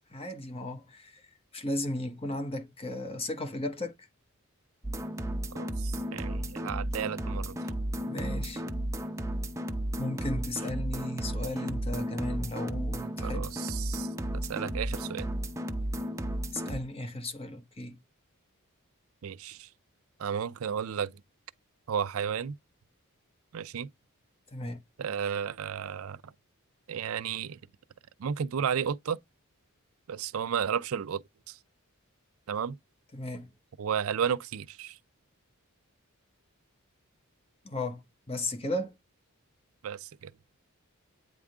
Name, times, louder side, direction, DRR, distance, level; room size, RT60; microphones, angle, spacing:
voice 1, 0.1-1.2 1.5-3.9 8.0-8.6 10.0-13.5 16.5-18.0 24.5-24.8 33.1-33.5 37.6-38.0 38.3-38.9, left 1 dB, 25° left, 0.9 m, -35 dB
sound 1, 4.8-16.8, right 1 dB, 15° right, 0.6 m, -34 dB
voice 2, 5.5-7.6 13.2-14.1 14.5-15.3 19.2-19.7 20.2-21.1 21.9-22.5 23.5-23.9 25.0-26.3 26.9-27.6 28.2-29.2 30.1-31.6 32.5-32.8 33.8-35.0 39.8-40.3, right 7 dB, 70° right, 0.4 m, -33 dB
8.9 x 3.6 x 3.6 m
head